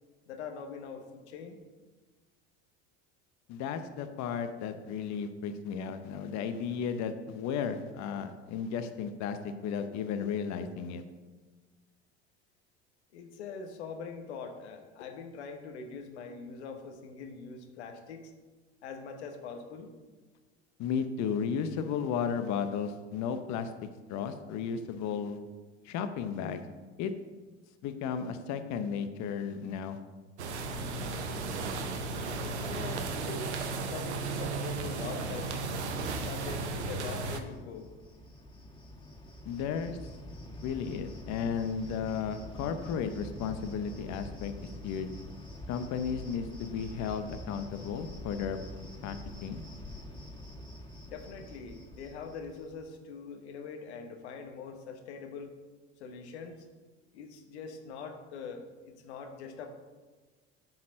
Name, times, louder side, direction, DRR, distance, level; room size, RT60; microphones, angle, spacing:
voice 1, 0.3-1.6 13.1-18.3 18.8-19.9 32.4-35.7 36.2-37.9 51.1-55.5 56.0-56.7 57.1-59.7, left 5 dB, 80° left, 5 dB, 1.1 m, -43 dB
voice 2, 3.5-11.0 20.8-23.7 24.1-25.4 25.8-26.6 27.0-27.1 27.8-30.0 39.5-40.0 40.6-45.1 45.7-48.6 49.0-49.6, left 7 dB, 55° left, 9 dB, 0.8 m, -34 dB
sound 1, 30.4-37.4, right 3 dB, 90° right, 0.8 m, -35 dB
Cricket, 37.4-52.8, left 1 dB, 15° left, 1.9 m, -46 dB
8.8 x 4.1 x 6.4 m, 1.3 s
hypercardioid pair, 70°, 33 cm